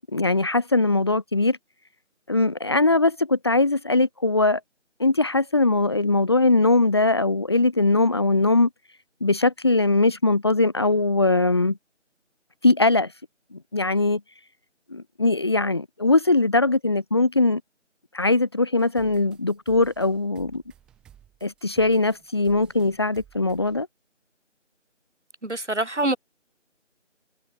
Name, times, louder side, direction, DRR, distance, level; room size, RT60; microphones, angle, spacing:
voice 1, 0.1-1.6 2.3-4.6 5.0-8.7 9.2-11.8 12.6-13.1 13.5-14.2 14.9-17.6 18.1-20.6 21.4-23.9, left 2 dB, 20° left, 2.5 m, -21 dB
sound 1, 18.8-23.8, right 10 dB, ahead, 5.0 m, -55 dB
voice 2, 25.4-26.2, right 2 dB, 70° right, 6.0 m, -25 dB
figure-of-eight pair, 170°, 37 cm